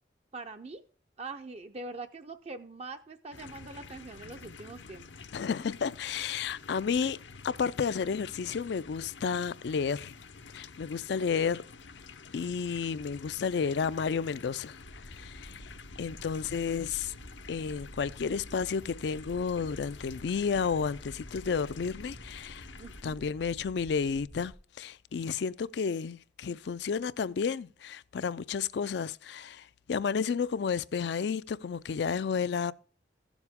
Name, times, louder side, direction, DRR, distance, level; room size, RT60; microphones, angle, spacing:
voice 1, 0.3-0.8 1.2-5.1 22.8-23.2, right 3 dB, 35° right, 0.5 m, -43 dB
sound 1, 3.3-23.0, left 5 dB, 85° left, 0.8 m, -49 dB
voice 2, 5.3-10.1 10.5-11.6 12.3-14.8 15.1-15.7 16.0-17.1 17.5-22.7 23.0-32.7, left 6 dB, 65° left, 0.4 m, -32 dB
sound 2, 14.8-24.6, right 1 dB, 65° right, 1.6 m, -50 dB
15.0 x 7.2 x 3.5 m
head